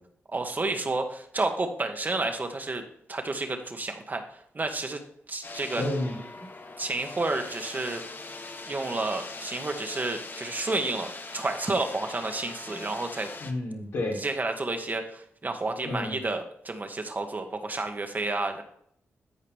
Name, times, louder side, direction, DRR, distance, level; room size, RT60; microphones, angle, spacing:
voice 1, 0.3-2.8 3.1-4.2 4.5-5.0 5.3-5.8 6.8-8.0 8.7-13.3 14.2-18.6, right 2 dB, 35° right, 5 dB, 1.6 m, -30 dB
sound 1, 5.4-13.5, left 3 dB, 40° left, 1.1 m, -41 dB
voice 2, 5.8-6.4 12.7-12.8 13.4-14.2 15.8-16.1, left 1 dB, 85° left, -3 dB, 3.7 m, -31 dB
13.5 x 4.8 x 3.5 m, 0.67 s
cardioid pair, 55°, 5 cm